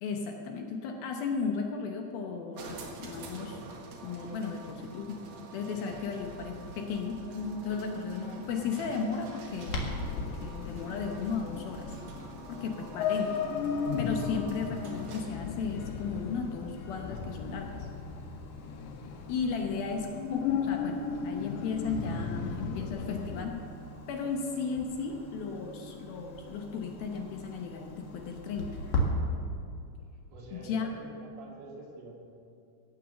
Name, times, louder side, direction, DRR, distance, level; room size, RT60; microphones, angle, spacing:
voice 1, 0.0-3.6 4.0-5.2 5.5-7.2 7.6-11.9 12.5-13.4 14.0-17.9 19.3-23.6 24.1-28.8 30.5-30.9, left 5 dB, 70° left, 2 dB, 2.4 m, -35 dB
sound 1, 2.5-15.5, right 3 dB, 65° right, 3.4 m, -47 dB
sound 2, 5.9-23.5, left 6 dB, 90° left, 3.0 m, -36 dB
Clock, 9.7-29.0, left 1 dB, 50° left, 2.4 m, -42 dB
voice 2, 20.0-20.3 30.3-32.1, right 2 dB, 85° right, -2 dB, 5.0 m, -47 dB
16.0 x 9.0 x 6.9 m, 2.5 s
omnidirectional pair, 5.1 m